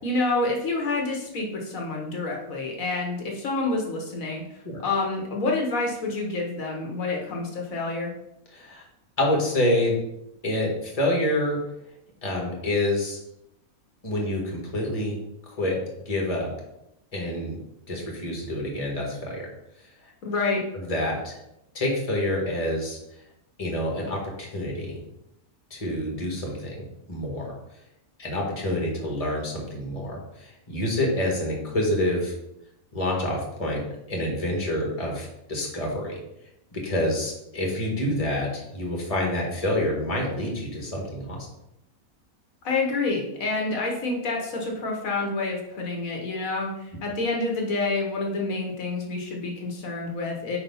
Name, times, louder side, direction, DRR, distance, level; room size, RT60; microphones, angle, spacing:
voice 1, 0.0-4.4 4.8-8.1 20.2-20.6 42.6-50.6, left 3 dB, 75° left, 0 dB, 1.5 m, -28 dB
voice 2, 8.5-8.8 9.2-10.0 10.4-11.6 12.2-13.2 14.0-15.2 15.5-15.8 16.0-16.5 17.1-17.6 17.9-19.5 20.7-21.3 21.7-23.0 23.6-25.0 25.7-27.5 28.2-32.3 32.9-36.2 36.7-41.4, left 1 dB, 25° left, -1 dB, 1.6 m, -27 dB
5.2 x 4.3 x 5.4 m, 0.82 s
omnidirectional pair, 1.5 m